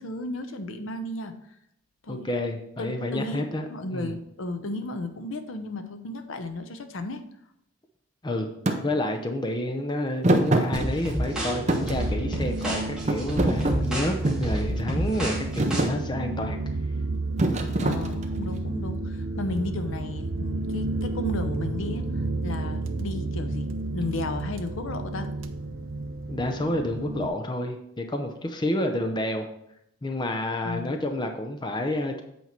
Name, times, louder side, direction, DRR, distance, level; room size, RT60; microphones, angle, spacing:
voice 1, 0.0-1.3 2.0-2.3 2.8-7.2 17.8-25.3 30.6-31.1, left 2 dB, 70° left, 8 dB, 0.7 m, -34 dB
voice 2, 2.1-4.1 8.2-8.5 8.8-16.6 26.3-29.5 30.0-32.2, left 1 dB, 20° left, 4 dB, 0.5 m, -29 dB
Thump thud, 8.7-8.8 10.2-11.3 11.7-12.7 13.1-14.5 15.1-15.3 15.6-16.0 17.4-18.5, right 1 dB, 35° right, 0.6 m, -24 dB
sound 1, 10.7-15.8, equal, 5° right, 1.7 m, -30 dB
sound 2, 11.1-27.3, right 2 dB, 70° right, 0.6 m, -31 dB
8.2 x 4.5 x 4.4 m, 0.77 s
head